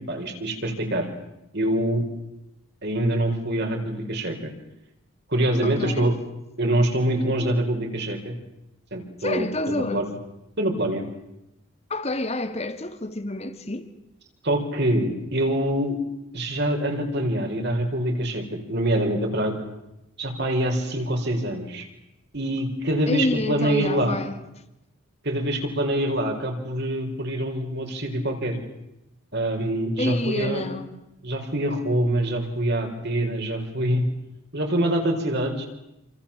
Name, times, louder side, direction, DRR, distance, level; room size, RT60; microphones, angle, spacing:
voice 1, 0.1-1.1 1.5-2.1 2.8-4.5 5.3-6.1 6.6-8.4 8.9-10.1 10.6-11.0 14.4-16.0 16.3-19.6 20.2-21.9 22.3-24.2 25.2-28.6 29.3-30.7 31.2-34.1 34.5-35.7, right 1 dB, 50° right, 4.9 m, -25 dB
voice 2, 5.6-6.1 9.2-10.1 11.9-13.9 23.1-24.3 30.0-30.9, left 2 dB, 30° left, 2.1 m, -28 dB
28.5 x 26.5 x 7.4 m
head